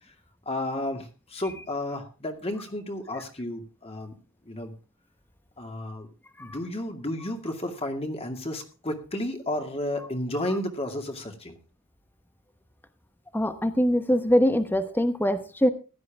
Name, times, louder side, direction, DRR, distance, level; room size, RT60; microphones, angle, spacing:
voice 1, 0.5-4.1 4.5-4.7 5.6-6.1 6.4-11.6, left 1 dB, 30° left, 5 dB, 2.3 m, -32 dB
voice 2, 13.3-15.7, equal, 10° left, 9 dB, 1.0 m, -23 dB
16.0 x 11.0 x 3.6 m, 0.33 s
head